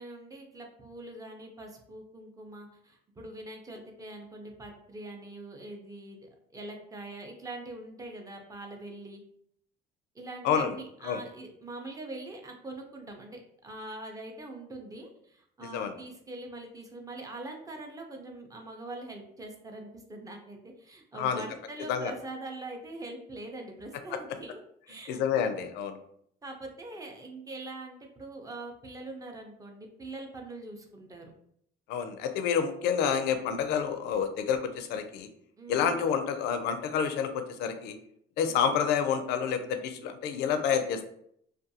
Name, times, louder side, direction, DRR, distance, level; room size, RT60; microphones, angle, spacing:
voice 1, 0.0-9.2 10.1-24.6 24.9-25.4 26.4-31.3 35.6-36.1 38.5-38.8, right 2 dB, 20° right, 2 dB, 0.5 m, -43 dB
voice 2, 25.1-26.0 31.9-35.3 35.7-38.0 38.4-41.0, left 7 dB, 85° left, 8 dB, 0.4 m, -28 dB
2.5 x 2.3 x 2.7 m, 0.70 s
cardioid pair, 110°, 17 cm